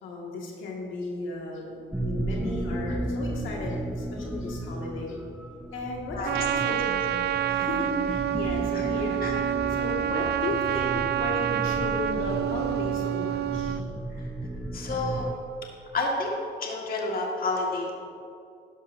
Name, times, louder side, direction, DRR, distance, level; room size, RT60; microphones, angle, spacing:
voice 1, 0.0-5.2 5.7-6.9 7.5-13.8, left 2 dB, 85° left, -2 dB, 2.0 m, -35 dB
sound 1, 1.9-15.3, right 1 dB, 5° right, 0.6 m, -34 dB
voice 2, 6.1-6.6 7.5-7.6 8.7-8.9 9.2-9.4 14.5-15.4 15.9-17.9, left 2 dB, 45° left, -1 dB, 1.8 m, -30 dB
Trumpet, 6.3-13.8, right 11 dB, 55° right, 0.4 m, -28 dB
12.0 x 11.0 x 2.7 m, 2.5 s
cardioid pair, 90°, 20 cm